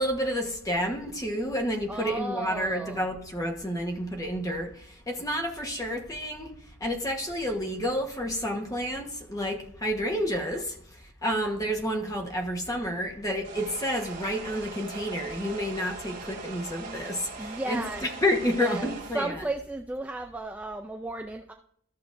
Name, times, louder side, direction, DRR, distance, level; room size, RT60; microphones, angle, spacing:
voice 1, 0.0-6.5 6.8-10.8 11.2-19.4, equal, 15° left, 2 dB, 1.2 m, -30 dB
voice 2, 1.9-3.1 17.4-18.0 18.6-21.5, right 2 dB, 5° right, 3 dB, 0.4 m, -34 dB
sound 1, 13.4-19.3, right 4 dB, 40° right, 2.0 m, -41 dB
14.0 x 6.7 x 2.6 m, 0.67 s
head